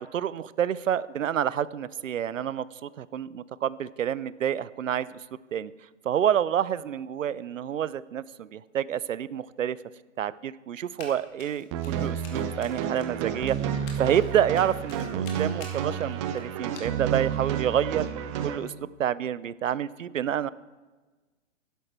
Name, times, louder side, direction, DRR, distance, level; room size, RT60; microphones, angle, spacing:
voice 1, 0.0-5.2 5.5-5.7 6.0-9.8 10.2-18.1 18.4-20.5, right 9 dB, 80° right, 19 dB, 0.6 m, -28 dB
Run, 11.0-11.1 11.4-17.4, left 4 dB, 35° left, 2.5 m, -48 dB
sound 1, 11.7-18.6, right 8 dB, 25° right, 0.7 m, -30 dB
12.5 x 10.5 x 4.4 m, 1.3 s
hypercardioid pair, 130°, 38 cm